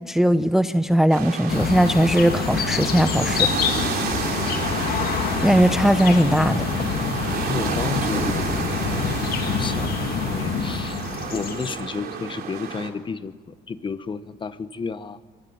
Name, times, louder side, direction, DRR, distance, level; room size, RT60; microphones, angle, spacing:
voice 1, 0.0-3.5 5.4-6.6, equal, ahead, 11 dB, 0.7 m, -19 dB
sound 1, 1.1-12.9, right 6 dB, 65° right, 3.3 m, -30 dB
sound 2, 1.5-11.8, left 6 dB, 60° left, 2.5 m, -26 dB
voice 2, 7.0-11.0 11.3-15.2, left 5 dB, 30° left, 13 dB, 1.2 m, -32 dB
24.5 x 20.0 x 8.9 m, 1.4 s
cardioid pair, 110°, 17 cm